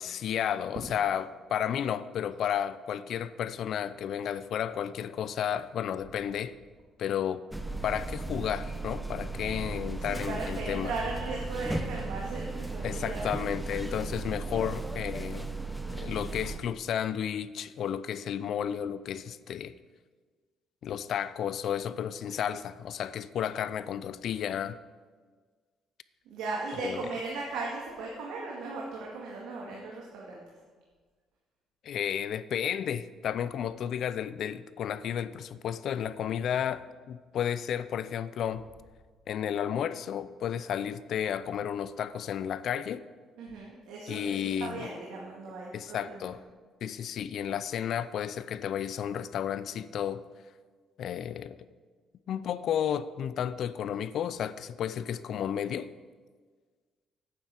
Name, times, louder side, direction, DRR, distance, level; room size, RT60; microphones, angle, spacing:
voice 1, 0.0-6.6 7.0-7.4 7.8-10.9 12.8-15.5 15.9-19.7 20.8-24.8 26.8-27.1 31.8-38.7 39.3-43.0 44.1-44.9 45.7-46.4 46.8-50.2 51.0-51.6 52.3-55.9, left 9 dB, 60° left, 0.5 m, -32 dB
sound 1, 7.5-16.6, right 3 dB, 5° right, 0.8 m, -36 dB
voice 2, 10.1-13.4 26.3-30.4 43.4-46.2, right 3 dB, 90° right, 2.0 m, -37 dB
9.1 x 7.4 x 8.3 m
cardioid pair, 130°, 0 cm